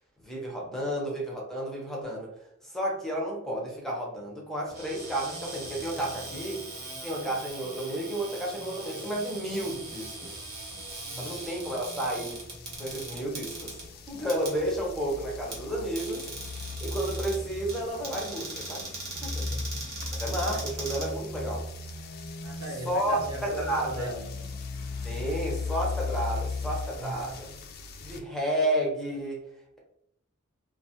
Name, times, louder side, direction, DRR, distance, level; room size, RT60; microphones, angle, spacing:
voice 1, 0.2-2.3 2.6-6.7 7.0-10.4 11.2-12.4 12.8-13.8 14.1-16.3 16.8-19.5 20.2-21.7 22.8-24.1 25.0-27.5 28.0-29.4, right 1 dB, ahead, 0.7 m, -32 dB
Cupboard open or close, 4.7-21.7, right 2 dB, 50° right, 0.9 m, -40 dB
sound 1, 9.6-28.2, left 3 dB, 45° left, 0.4 m, -38 dB
voice 2, 19.4-19.9 20.5-20.6 22.4-24.5 27.0-27.4, right 1 dB, 85° right, 0.7 m, -39 dB
2.5 x 2.3 x 2.8 m
head